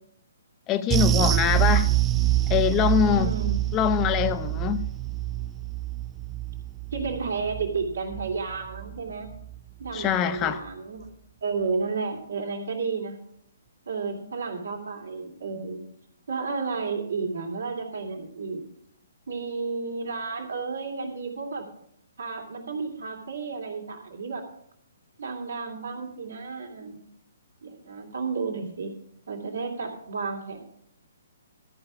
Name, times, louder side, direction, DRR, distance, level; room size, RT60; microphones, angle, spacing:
voice 1, 0.7-1.9 2.5-3.3 3.7-4.9 9.9-10.6, left 10 dB, 25° left, 0.6 m, -24 dB
sound 1, 0.9-9.6 9.9-10.1 10.5-10.6, right 14 dB, 20° right, 0.3 m, -26 dB
voice 2, 3.0-3.6 6.9-9.3 9.8-11.1 11.4-13.2 13.9-15.8 16.3-18.6 19.3-21.7 22.2-24.4 25.2-27.0 27.6-28.9 29.3-30.6, right 4 dB, 75° right, 2.7 m, -32 dB
13.5 x 4.9 x 8.4 m
hypercardioid pair, 135°, 0 cm